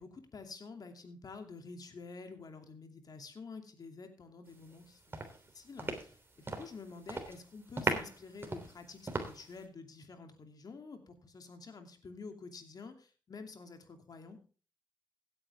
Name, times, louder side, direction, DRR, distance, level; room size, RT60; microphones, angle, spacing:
voice 1, 0.0-5.2 5.5-14.4, left 4 dB, 55° left, 6 dB, 2.7 m, -49 dB
sound 1, 4.6-4.8 5.1-6.8 7.0-7.4 7.8-9.6, right 2 dB, 30° right, 3.2 m, -37 dB
16.0 x 9.2 x 3.5 m, 0.38 s
cardioid pair, 65°, 8 cm